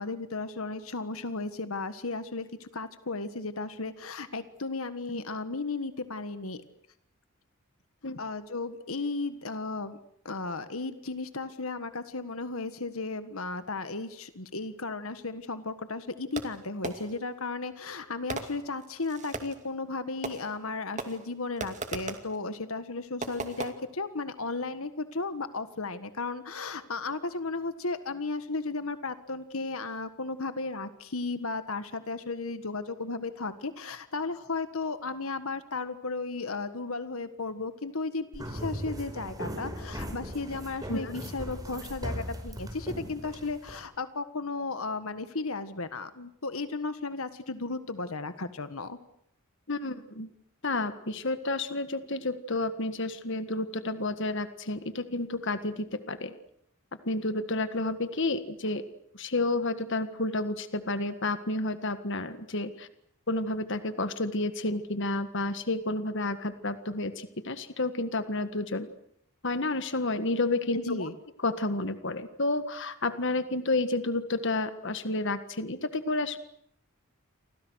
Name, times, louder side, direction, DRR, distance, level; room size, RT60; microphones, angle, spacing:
voice 1, 0.0-6.6 8.1-10.0 10.2-49.0 70.7-71.1, left 3 dB, 75° left, 11 dB, 1.7 m, -35 dB
Fireworks, 16.4-17.3 18.3-19.7 20.2-20.7 21.0-22.4 23.2-23.7, right 3 dB, 35° right, 2.4 m, -38 dB
sound 1, 38.3-43.8, equal, 15° right, 5.0 m, -38 dB
voice 2, 49.7-50.3 50.6-56.3 57.0-58.8 59.1-62.9 63.3-68.9 69.4-71.1 71.4-76.4, left 2 dB, 55° left, 11 dB, 1.7 m, -30 dB
29.5 x 25.0 x 6.5 m, 0.71 s
head